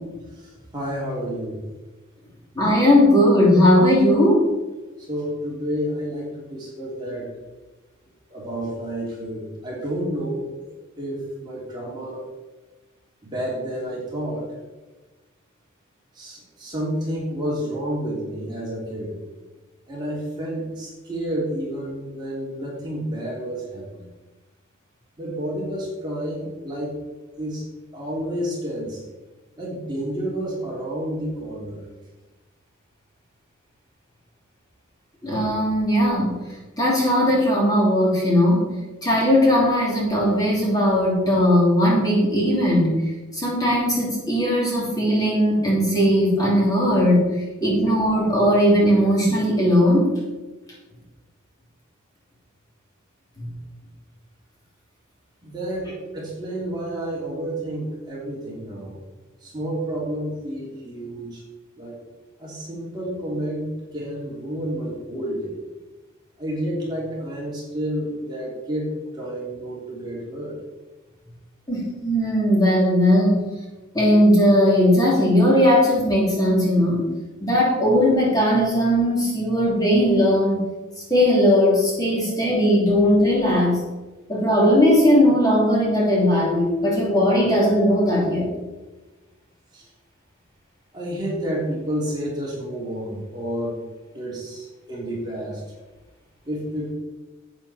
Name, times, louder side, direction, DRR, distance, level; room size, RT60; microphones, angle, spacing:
voice 1, 0.3-1.6 5.0-7.3 8.3-10.4 11.0-12.3 13.2-14.5 16.1-19.2 19.9-24.1 25.2-27.0 27.4-27.6 27.9-29.0 29.6-31.8 55.4-59.0 59.4-61.4 61.8-62.0 62.4-65.6 66.4-70.6 89.7-89.9 90.9-93.8 94.1-95.6 96.4-96.9, right 1 dB, 20° right, -5 dB, 3.0 m, -30 dB
voice 2, 2.6-4.5 35.2-36.3 36.8-38.7 39.0-43.0 43.3-47.2 47.6-50.1 53.4-53.5 71.7-73.4 73.9-77.1 77.4-80.6 81.1-83.8 84.3-88.5, equal, 20° left, -5 dB, 3.0 m, -18 dB
10.5 x 8.9 x 4.3 m, 1.2 s
head